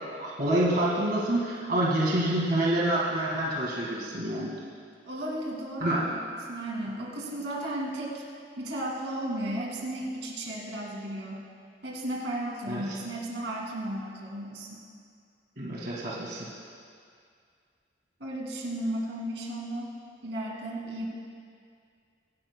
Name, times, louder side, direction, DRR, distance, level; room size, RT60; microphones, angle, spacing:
voice 1, 0.0-4.5 5.8-6.0 12.7-12.8 15.6-16.5, right 1 dB, 55° right, -5 dB, 1.9 m, -27 dB
voice 2, 5.0-6.2 6.5-8.2 8.6-11.5 11.8-14.8 18.2-19.9 20.2-21.1, right 1 dB, 80° right, -2 dB, 2.3 m, -34 dB
24.5 x 11.5 x 2.2 m, 2.2 s
head